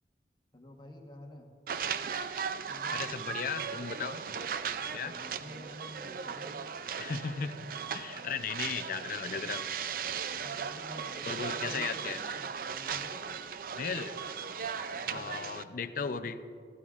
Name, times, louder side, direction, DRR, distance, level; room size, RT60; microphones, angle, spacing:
voice 1, 0.5-1.5 2.7-3.2 4.6-6.8 8.1-8.5 10.3-13.5 14.9-15.5, left 1 dB, 25° left, 2 dB, 1.2 m, -50 dB
sound 1, 1.7-15.6, right 7 dB, 50° right, 0.4 m, -37 dB
voice 2, 2.9-4.2 4.9-5.1 7.0-7.6 7.9-9.7 11.2-12.2 13.7-14.2 15.1-16.4, left 5 dB, 50° left, 11 dB, 0.5 m, -36 dB
15.5 x 15.5 x 2.5 m, 2.6 s
head